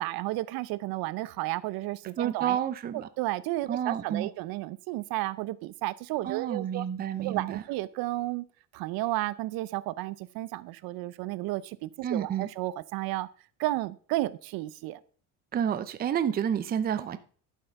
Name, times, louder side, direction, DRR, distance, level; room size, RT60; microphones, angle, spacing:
voice 1, 0.0-2.6 3.2-6.8 7.2-8.4 8.7-13.3 13.6-15.0, right 17 dB, 65° right, 0.6 m, -32 dB
voice 2, 2.2-3.1 3.7-4.3 6.2-7.6 12.0-12.5 15.5-17.2, right 9 dB, 25° right, 0.6 m, -30 dB
12.0 x 5.8 x 5.3 m
cardioid pair, 160°, 39 cm